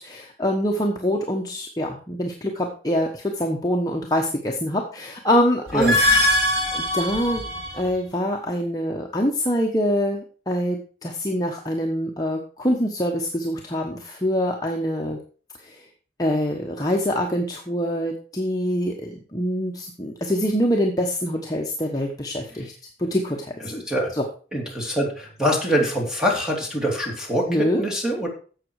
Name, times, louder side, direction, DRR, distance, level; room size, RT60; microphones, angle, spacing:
voice 1, 0.0-6.1 6.7-7.4 7.7-15.2 15.6-15.8 16.2-22.7 23.0-23.7 24.1-24.2 27.5-27.8, equal, 20° left, 0 dB, 1.1 m, -25 dB
sound 1, 5.7-7.9, left 1 dB, 55° right, 3.2 m, -22 dB
voice 2, 23.6-24.1 24.5-28.3, equal, 5° right, 0 dB, 2.9 m, -24 dB
11.5 x 7.6 x 4.7 m, 0.40 s
head